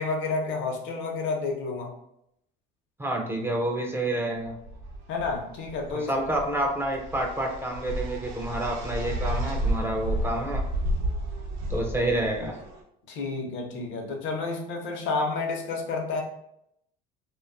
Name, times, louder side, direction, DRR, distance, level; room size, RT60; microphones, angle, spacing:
voice 1, 0.0-1.9 5.1-6.1 13.1-16.2, left 3 dB, 65° left, 2 dB, 0.7 m, -30 dB
voice 2, 3.0-4.5 5.9-10.7 11.7-12.6, right 1 dB, 10° right, 1 dB, 0.3 m, -28 dB
sound 1, 4.4-12.8, right 1 dB, 90° right, 0.6 m, -32 dB
2.5 x 2.2 x 2.4 m, 0.76 s
supercardioid pair, 95°, 21 cm